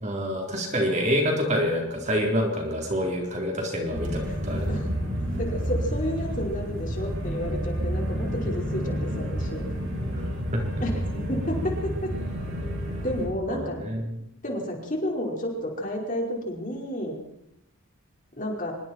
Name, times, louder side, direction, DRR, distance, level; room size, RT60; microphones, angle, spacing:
voice 1, 0.0-4.7 13.5-14.2, equal, 35° right, 1 dB, 4.0 m, -27 dB
sound 1, 3.9-13.3, equal, 60° right, 7.7 m, -30 dB
voice 2, 5.4-9.6 10.8-11.7 12.0-12.1 13.0-13.8 14.4-17.2 18.4-18.7, equal, 35° left, 0 dB, 5.2 m, -31 dB
25.5 x 23.0 x 4.6 m, 0.79 s
head